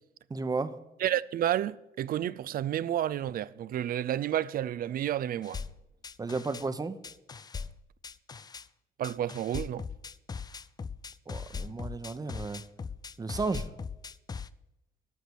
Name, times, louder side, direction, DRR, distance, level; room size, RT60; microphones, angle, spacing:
voice 1, 0.3-0.8 6.2-7.0 11.3-12.6 13.2-13.7, right 3 dB, 20° right, 0.8 m, -33 dB
voice 2, 1.0-5.6 9.0-9.8, right 11 dB, 60° right, 0.4 m, -30 dB
sound 1, 5.4-6.7 7.0-8.7 9.0-14.5, left 5 dB, 25° left, 0.4 m, -40 dB
13.0 x 6.0 x 6.9 m
cardioid pair, 95°, 17 cm